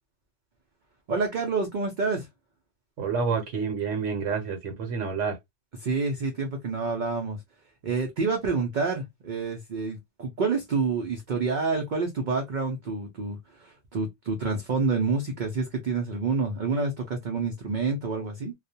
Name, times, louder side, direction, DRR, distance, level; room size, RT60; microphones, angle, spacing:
voice 1, 1.1-2.3 5.8-7.4 7.8-18.5, right 4 dB, 55° right, 0.5 m, -28 dB
voice 2, 3.0-5.4, right 5 dB, 75° right, 1.0 m, -28 dB
2.3 x 2.1 x 2.6 m
omnidirectional pair, 1.3 m